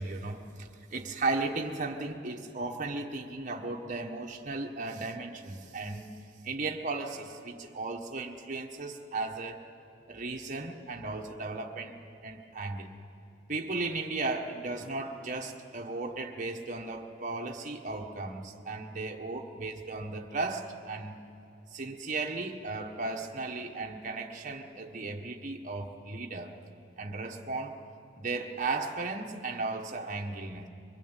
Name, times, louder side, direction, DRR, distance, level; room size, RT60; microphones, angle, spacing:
voice 1, 0.0-6.1 6.4-9.6 10.1-12.0 12.2-12.9 13.5-21.2 21.7-26.6 27.0-27.8 28.2-30.7, right 3 dB, 40° right, 1 dB, 1.5 m, -35 dB
23.5 x 21.5 x 9.1 m, 2.6 s
head